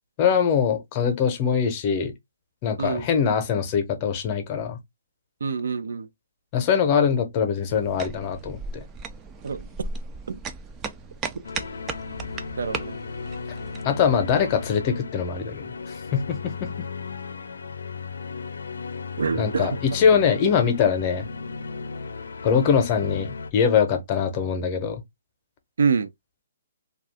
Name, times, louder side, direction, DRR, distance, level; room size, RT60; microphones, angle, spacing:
voice 1, 0.2-2.1 2.6-4.8 6.5-8.8 13.8-16.7 19.4-21.3 22.4-25.0, left 7 dB, 30° left, 0.8 m, -23 dB
voice 2, 5.4-6.1 9.4-9.9 10.3-10.4 12.6-13.0 19.2-19.8 20.3-20.4 25.8-26.1, right 5 dB, 75° right, 0.5 m, -26 dB
sound 1, 7.7-13.8, right 4 dB, 15° right, 0.4 m, -36 dB
sound 2, 11.4-23.5, left 5 dB, 85° left, 0.5 m, -35 dB
2.6 x 2.4 x 3.3 m
hypercardioid pair, 155°, 0 cm